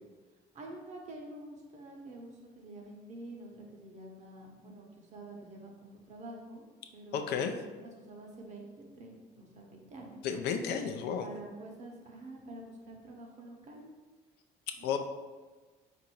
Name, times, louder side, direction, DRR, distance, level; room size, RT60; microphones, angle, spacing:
voice 1, 0.5-6.7 6.9-7.6 7.8-10.3 11.2-13.9 14.8-15.0, right 1 dB, 45° right, 1 dB, 0.9 m, -48 dB
voice 2, 7.1-7.5 10.2-11.2 14.8-15.0, left 7 dB, 75° left, 6 dB, 0.5 m, -32 dB
3.7 x 2.6 x 4.5 m, 1.3 s
cardioid pair, 110°, 17 cm